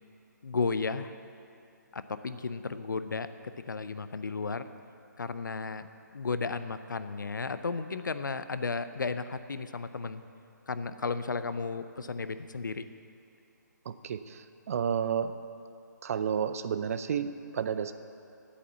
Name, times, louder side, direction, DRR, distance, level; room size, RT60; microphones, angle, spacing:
voice 1, 0.4-1.2 1.9-4.7 5.2-5.9 6.1-10.2 10.7-12.9, left 4 dB, 85° left, 12 dB, 0.6 m, -34 dB
voice 2, 13.9-15.4 16.0-17.9, right 7 dB, 50° right, 12 dB, 0.5 m, -31 dB
8.5 x 7.6 x 8.1 m, 2.6 s
figure-of-eight pair, 145°, 10 cm